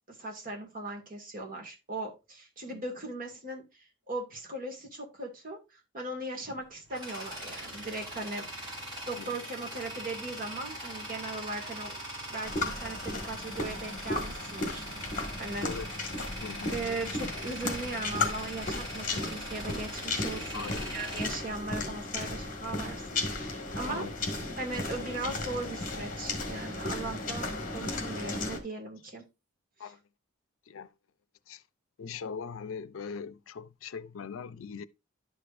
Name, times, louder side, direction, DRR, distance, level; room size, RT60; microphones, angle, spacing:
voice 1, 0.1-3.7 4.1-5.6 5.9-12.0 12.3-15.7 16.7-20.7 20.9-24.1 24.6-29.2, right 2 dB, 45° right, 2.1 m, -38 dB
Tools, 6.4-22.2, equal, 25° right, 4.4 m, -42 dB
sound 1, 12.4-28.6, left 2 dB, 40° left, 1.8 m, -35 dB
voice 2, 16.4-16.9 20.5-20.8 23.8-24.1 29.8-30.0 30.7-30.9 31.5-31.6 32.0-34.8, left 6 dB, 85° left, 0.5 m, -40 dB
11.5 x 5.0 x 2.6 m
head